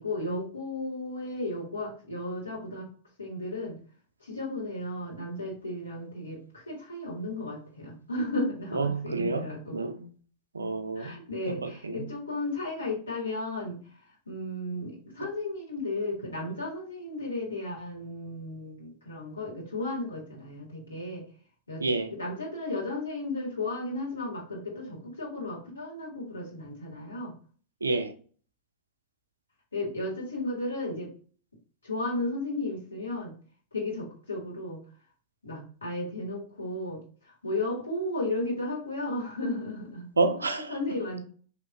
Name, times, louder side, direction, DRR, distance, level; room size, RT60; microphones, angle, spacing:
voice 1, 0.0-2.9 3.2-3.8 4.2-9.8 10.9-13.8 14.3-21.2 21.7-21.8 22.2-27.3 29.7-31.1 31.8-33.4 33.7-34.8 35.4-40.1 40.7-41.2, left 2 dB, 75° left, 1.5 m, -34 dB
voice 2, 8.7-10.1 10.5-11.2 11.5-12.1 21.8-22.1 27.8-28.1 40.2-40.7, right 3 dB, 75° right, 0.4 m, -29 dB
3.4 x 2.9 x 2.5 m
figure-of-eight pair, 90°, 0 cm